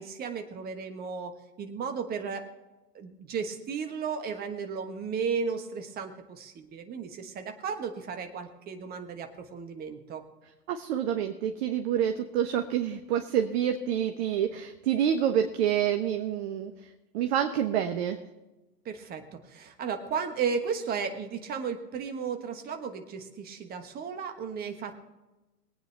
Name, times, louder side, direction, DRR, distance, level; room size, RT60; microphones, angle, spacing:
voice 1, 0.0-2.5 2.9-10.2 18.8-25.0, right 6 dB, 20° right, 7 dB, 1.3 m, -34 dB
voice 2, 10.7-16.7 17.1-18.2, right 9 dB, 40° right, 6 dB, 1.0 m, -27 dB
22.0 x 9.1 x 3.4 m, 1.1 s
figure-of-eight pair, 115°, 48 cm